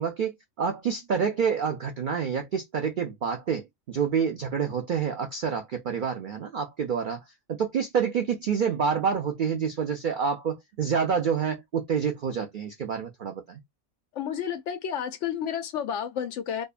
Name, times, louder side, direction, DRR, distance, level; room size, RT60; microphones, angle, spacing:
voice 1, 0.0-7.2 7.5-13.6, right 6 dB, 75° right, 0.4 m, -28 dB
voice 2, 14.1-16.6, left 8 dB, 65° left, 0.8 m, -31 dB
2.7 x 2.2 x 2.4 m
omnidirectional pair, 1.4 m